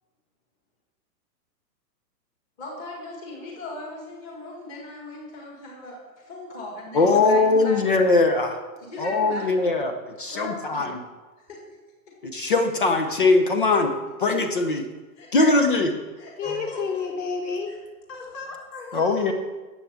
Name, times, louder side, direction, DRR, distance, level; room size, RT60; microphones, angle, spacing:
voice 1, 2.6-7.8 8.8-9.5 10.3-10.9 11.5-11.6 13.7-13.8 14.2-14.4 15.2-15.5 16.2-17.1 17.7-17.8 18.7-19.3, left 1 dB, 15° left, -1 dB, 1.9 m, -39 dB
voice 2, 6.9-8.6 9.0-10.9 12.2-13.9 14.2-14.9 15.3-15.9 18.9-19.3, left 3 dB, 30° left, 6 dB, 0.8 m, -21 dB
voice 3, 16.4-17.7 18.1-19.1, left 5 dB, 75° left, -2 dB, 4.1 m, -31 dB
10.5 x 7.8 x 7.1 m, 1.2 s
hypercardioid pair, 180°, 50 cm